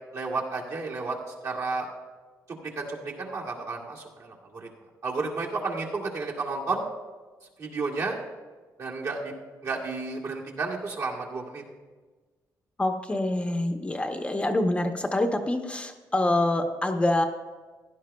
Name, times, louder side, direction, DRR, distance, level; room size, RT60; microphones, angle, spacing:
voice 1, 0.1-1.2 1.4-1.9 2.8-4.7 5.0-6.8 7.6-8.2 8.8-9.3 9.6-11.6, right 3 dB, 60° right, -3 dB, 1.9 m, -32 dB
voice 2, 12.8-17.3, left 1 dB, 20° left, 5 dB, 0.7 m, -26 dB
15.5 x 11.0 x 2.2 m, 1.3 s
cardioid pair, 110°, 6 cm